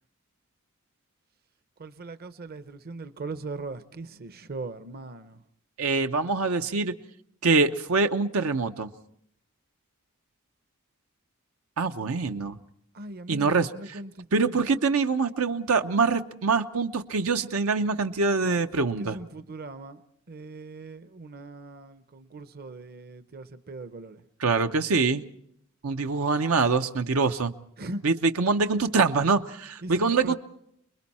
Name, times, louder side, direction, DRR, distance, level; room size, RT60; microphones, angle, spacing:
voice 1, 1.8-5.4 12.9-14.6 18.4-24.2 27.8-28.0 29.8-30.3, right 2 dB, 45° right, 0.7 m, -40 dB
voice 2, 5.8-6.9 7.4-8.9 11.8-12.6 13.3-13.7 14.3-19.2 24.4-25.2 25.8-27.5 28.0-30.3, right 4 dB, 85° right, 0.8 m, -24 dB
28.5 x 21.0 x 4.3 m
head